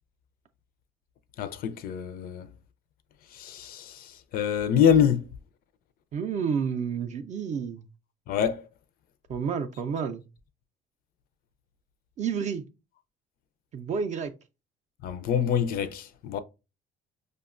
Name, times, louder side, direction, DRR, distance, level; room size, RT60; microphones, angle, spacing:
voice 1, 1.4-2.5 3.3-5.3 8.3-8.7 15.0-16.4, left 8 dB, 60° left, 0.4 m, -25 dB
voice 2, 6.1-7.8 9.3-10.2 12.2-12.6 13.7-14.3, right 6 dB, 45° right, 0.4 m, -30 dB
5.0 x 2.2 x 2.4 m
cardioid pair, 110°, 17 cm